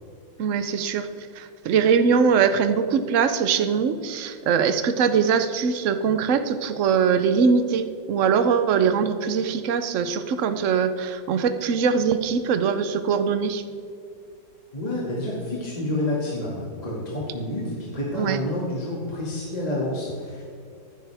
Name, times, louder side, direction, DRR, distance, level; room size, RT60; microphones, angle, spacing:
voice 1, 0.4-1.1 1.4-13.6 18.1-18.4, right 6 dB, 60° right, 10 dB, 0.8 m, -22 dB
voice 2, 14.7-20.4, left 1 dB, 20° left, -5 dB, 2.2 m, -29 dB
15.0 x 10.0 x 3.5 m, 2.4 s
omnidirectional pair, 2.1 m